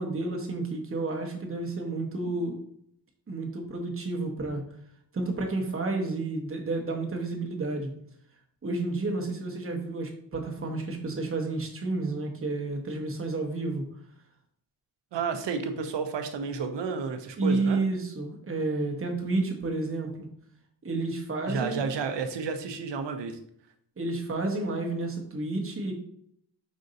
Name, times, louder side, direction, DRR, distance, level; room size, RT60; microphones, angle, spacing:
voice 1, 0.0-2.6 3.3-4.6 5.1-7.9 8.6-13.9 17.4-20.3 20.8-21.9 24.0-25.9, right 2 dB, 30° right, 2 dB, 0.9 m, -30 dB
voice 2, 15.1-17.8 21.5-23.4, right 5 dB, 90° right, 7 dB, 0.7 m, -31 dB
5.2 x 2.6 x 3.9 m, 0.67 s
wide cardioid pair, 130°, 42 cm